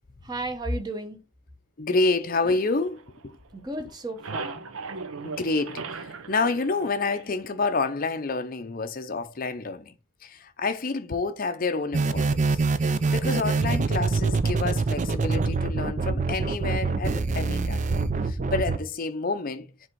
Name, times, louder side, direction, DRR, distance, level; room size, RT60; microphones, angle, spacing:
voice 1, 0.2-1.2 3.5-4.6, right 1 dB, 20° right, 1.0 m, -33 dB
voice 2, 1.8-3.4 5.2-10.0 10.2-17.8 18.2-19.7, left 3 dB, 40° left, 0.6 m, -29 dB
sound 1, 2.4-3.6 3.9-7.6, right 4 dB, 70° right, 0.8 m, -38 dB
sound 2, 11.9-18.8, right 3 dB, 35° right, 0.4 m, -25 dB
7.7 x 3.6 x 4.5 m
head